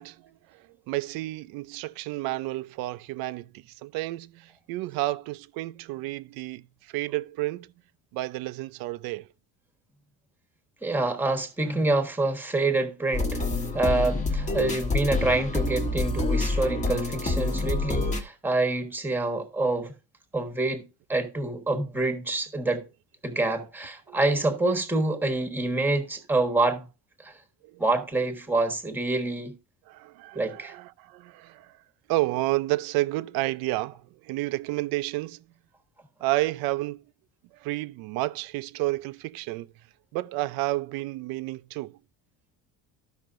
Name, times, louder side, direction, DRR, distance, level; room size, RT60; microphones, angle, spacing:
voice 1, 0.0-7.7 8.1-9.3 24.1-24.2 27.6-27.8 29.9-31.7 32.1-35.4 36.2-37.0 37.5-39.7 40.1-42.0, right 18 dB, 75° right, 0.6 m, -31 dB
voice 2, 10.8-13.4 13.7-19.9 20.3-20.8 21.1-22.8 23.2-26.8 27.2-27.4 27.8-29.5 30.3-30.7, right 2 dB, 5° right, 1.3 m, -26 dB
sound 1, 13.1-18.2, left 2 dB, 20° left, 1.2 m, -27 dB
14.0 x 5.8 x 2.5 m
cardioid pair, 160°, 36 cm